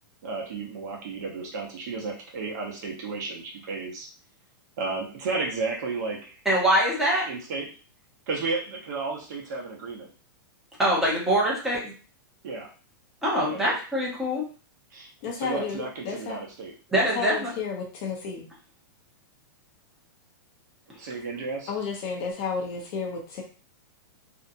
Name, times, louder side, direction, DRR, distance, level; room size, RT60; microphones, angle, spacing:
voice 1, 0.2-4.1 4.8-6.4 7.3-7.7 8.3-10.1 12.4-12.7 13.5-13.8 14.9-15.1 15.4-16.7 20.9-21.7, right 4 dB, 50° right, 0 dB, 0.9 m, -33 dB
voice 2, 6.4-7.2 10.8-11.9 13.2-14.4 16.9-17.5, equal, 5° right, -5 dB, 0.8 m, -23 dB
voice 3, 15.2-16.4 17.1-18.5 21.7-23.4, left 5 dB, 35° left, 1 dB, 0.7 m, -32 dB
2.7 x 2.2 x 2.6 m, 0.37 s
supercardioid pair, 160°, 11 cm